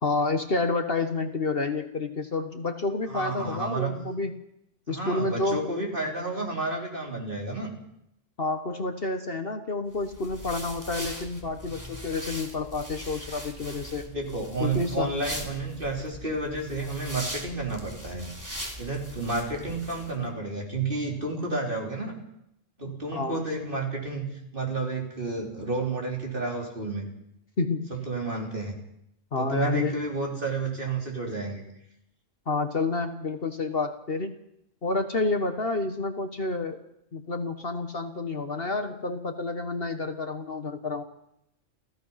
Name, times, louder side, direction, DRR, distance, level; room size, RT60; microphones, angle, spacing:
voice 1, 0.0-4.3 4.9-5.7 8.4-14.1 14.6-15.1 22.8-23.4 27.6-27.9 29.3-29.9 32.5-34.4 34.8-36.8 37.1-41.0, left 3 dB, 45° left, 7 dB, 1.5 m, -29 dB
voice 2, 3.1-3.9 4.9-7.7 14.0-18.3 18.8-22.2 22.8-27.1 27.9-28.7 29.4-31.7, right 3 dB, 40° right, 0 dB, 4.4 m, -31 dB
sound 1, 9.9-20.1, equal, 15° right, 3.2 m, -40 dB
30.0 x 15.0 x 5.8 m, 0.80 s
omnidirectional pair, 1.4 m